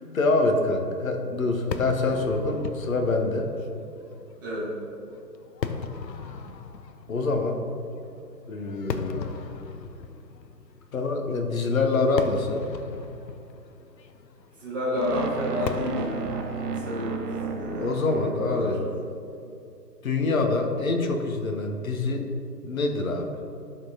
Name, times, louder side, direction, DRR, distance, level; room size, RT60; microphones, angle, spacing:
voice 1, 0.1-3.5 7.1-7.6 8.5-9.3 10.9-12.6 17.8-18.8 20.0-22.3 22.6-23.3, left 3 dB, 55° left, 4 dB, 0.9 m, -25 dB
Fireworks, 1.7-19.0, left 5 dB, 85° left, 0.6 m, -38 dB
voice 2, 4.4-4.7 14.6-16.3 16.8-17.9 18.3-18.7 19.4-19.5, left 1 dB, 15° right, -8 dB, 0.8 m, -30 dB
sound 1, 14.9-19.0, right 5 dB, 65° right, 0.7 m, -33 dB
10.5 x 3.7 x 2.7 m, 2.6 s
figure-of-eight pair, 145°, 50 cm